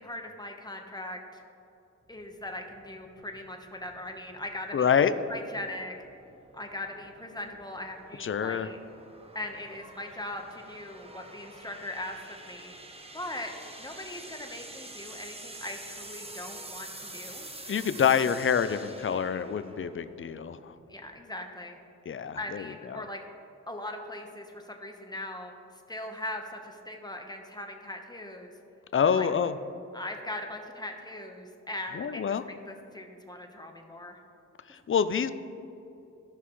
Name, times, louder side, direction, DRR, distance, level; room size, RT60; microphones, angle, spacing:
voice 1, 0.0-1.4 2.1-5.9 6.5-8.8 9.3-12.7 13.1-13.5 13.8-17.5 20.9-21.8 22.4-23.2 23.7-28.5 29.1-29.3 29.9-34.2, left 1 dB, 15° left, 3 dB, 1.1 m, -40 dB
sound 1, 2.1-21.2, right 2 dB, 20° right, 0.9 m, -47 dB
voice 2, 4.7-5.1 8.2-8.7 17.7-20.7 22.1-22.6 22.9-23.0 28.9-29.6 31.9-32.4 34.7-35.3, left 7 dB, 45° left, 12 dB, 0.5 m, -26 dB
14.5 x 5.7 x 3.2 m, 2.7 s
cardioid pair, 65°, 30 cm